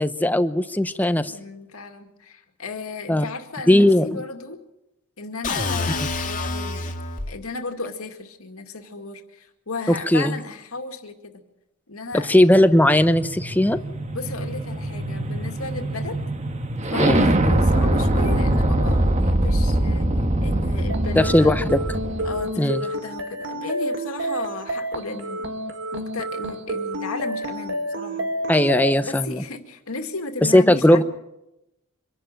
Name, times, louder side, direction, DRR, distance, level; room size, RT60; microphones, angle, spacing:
voice 1, 0.0-1.3 3.1-3.2 3.7-4.1 10.1-10.4 12.3-13.8 17.0-17.2 21.2-21.8 22.6-22.8 28.5-29.4 30.5-31.0, left 1 dB, 10° left, 11 dB, 0.8 m, -17 dB
voice 2, 1.2-4.6 5.2-6.9 7.3-11.4 11.9-12.3 14.1-16.2 16.9-20.1 20.4-21.5 22.2-25.5 25.9-28.3 29.0-31.0, left 3 dB, 75° left, 5 dB, 2.3 m, -34 dB
sound 1, 5.4-7.4, left 3 dB, 35° left, 2.1 m, -27 dB
sound 2, 12.2-22.4, right 1 dB, 30° right, 1.4 m, -23 dB
sound 3, 20.9-28.9, right 1 dB, 60° right, 2.0 m, -29 dB
25.0 x 11.5 x 9.1 m, 0.89 s
head